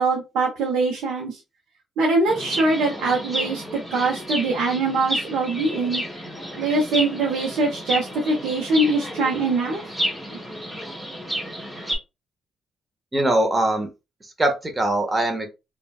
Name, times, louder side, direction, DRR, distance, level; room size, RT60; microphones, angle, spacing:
voice 1, 0.0-1.4 2.0-3.6 3.9-6.0 6.6-9.8, right 3 dB, 85° right, -1 dB, 0.7 m, -23 dB
Chirp tweet, 2.3-12.0, equal, 5° right, 1.8 m, -31 dB
voice 2, 13.1-13.9 14.2-15.5, right 1 dB, 20° right, 4 dB, 0.8 m, -22 dB
3.2 x 2.3 x 2.3 m, 0.26 s
cardioid pair, 90°, 0 cm